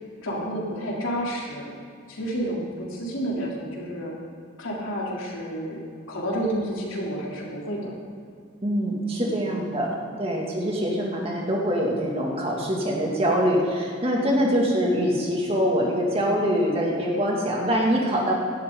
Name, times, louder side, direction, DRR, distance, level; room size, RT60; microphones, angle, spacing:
voice 1, 0.2-1.7 2.1-4.1 4.6-8.0 9.2-10.1 14.3-14.7, equal, 85° left, -3 dB, 3.3 m, -31 dB
voice 2, 8.6-18.3, equal, 30° right, -2 dB, 2.4 m, -24 dB
17.0 x 12.5 x 4.0 m, 2.3 s
head